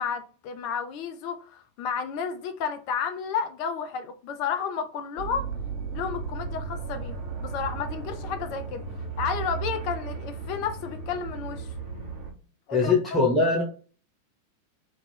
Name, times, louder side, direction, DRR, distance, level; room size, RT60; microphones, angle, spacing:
voice 1, 0.0-5.5 5.9-8.8 9.2-11.7 12.7-13.2, left 6 dB, 45° left, 0.4 m, -32 dB
sound 1, 5.2-12.3, right 5 dB, 45° right, 0.9 m, -35 dB
voice 2, 12.7-13.6, left 3 dB, 5° left, 0.7 m, -21 dB
2.4 x 2.2 x 3.2 m
figure-of-eight pair, 90°, 0 cm